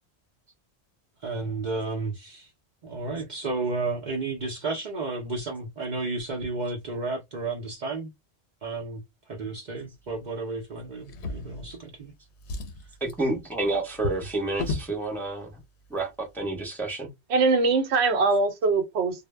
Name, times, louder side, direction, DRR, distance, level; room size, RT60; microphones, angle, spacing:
voice 1, 1.2-2.5 2.8-8.1 8.6-9.0 9.3-12.1, right 3 dB, 50° right, 0.6 m, -32 dB
Drawer open or close, 11.0-12.0 12.4-15.0 15.9-16.0 16.4-16.5, left 3 dB, 85° left, 0.9 m, -35 dB
voice 2, 13.0-15.5 15.9-17.1, right 2 dB, ahead, 0.6 m, -29 dB
voice 3, 17.3-19.3, right 3 dB, 80° right, 0.9 m, -22 dB
2.0 x 2.0 x 3.1 m
omnidirectional pair, 1.1 m